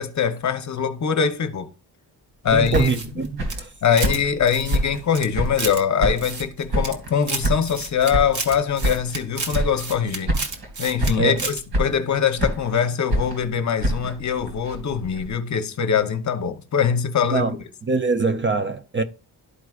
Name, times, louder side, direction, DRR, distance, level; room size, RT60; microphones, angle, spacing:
voice 1, 0.0-1.7 2.4-2.9 3.8-10.3 10.8-17.5, left 7 dB, 45° left, 0.8 m, -23 dB
voice 2, 2.5-3.7 11.2-11.4 17.3-17.6 17.8-19.0, right 4 dB, 30° right, 0.4 m, -23 dB
sound 1, 2.5-5.7 6.0-7.1 7.4-9.2 9.5-10.0 10.3-10.7 11.0-11.4 11.7-12.8 13.1-15.3, right 1 dB, 65° right, 2.7 m, -27 dB
sound 2, 2.7-4.2 4.5-5.8 6.2-7.0 7.2-11.1 11.4-11.6, right 3 dB, 45° right, 1.2 m, -31 dB
12.5 x 4.7 x 2.3 m
wide cardioid pair, 170°, 40 cm